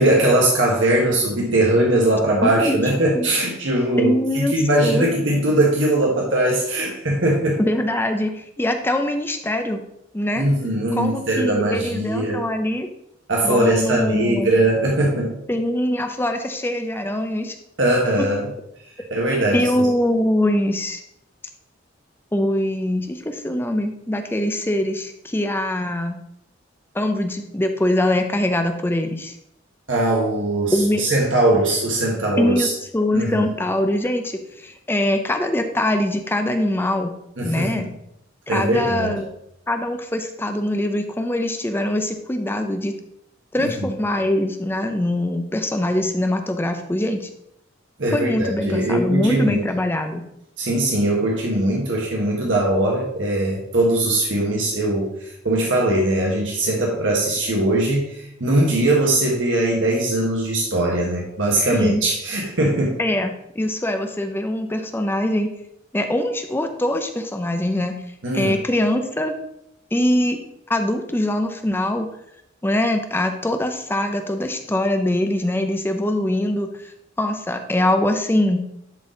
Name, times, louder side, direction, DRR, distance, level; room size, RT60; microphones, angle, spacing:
voice 1, 0.0-7.6 10.4-12.5 13.3-15.3 17.8-18.5 19.1-19.7 29.9-32.7 33.1-33.5 37.4-37.8 38.5-39.2 43.6-43.9 48.0-49.6 50.6-55.1 55.4-63.0 68.2-68.5, right 1 dB, 75° right, -2 dB, 1.4 m, -20 dB
voice 2, 2.4-2.8 3.1-3.3 4.0-4.5 4.8-5.1 7.6-9.8 10.1-10.5 10.9-12.9 13.4-14.5 15.5-17.6 18.2-18.3 19.5-21.0 22.3-26.2 26.9-29.4 30.7-31.0 32.4-32.7 32.9-37.1 37.4-37.9 38.5-39.3 39.7-42.9 43.5-47.3 48.1-50.2 61.7-62.0 63.0-65.5 65.9-68.0 68.3-69.3 69.9-70.4 70.7-72.1 72.6-76.7 77.2-78.7, left 1 dB, 10° left, 6 dB, 0.5 m, -23 dB
10.5 x 4.1 x 3.8 m, 0.78 s
head